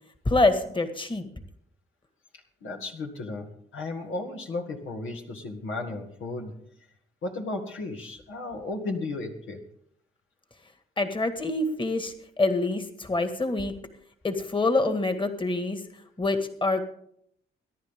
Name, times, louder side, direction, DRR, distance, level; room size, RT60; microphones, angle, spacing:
voice 1, 0.3-1.3 11.0-13.7 14.2-15.8 16.2-16.8, left 2 dB, 25° left, 8 dB, 2.1 m, -26 dB
voice 2, 2.6-3.5 3.7-6.5 7.2-9.6, left 2 dB, 75° left, 2 dB, 2.1 m, -34 dB
22.0 x 10.5 x 3.8 m, 0.67 s
supercardioid pair, 55°, 21 cm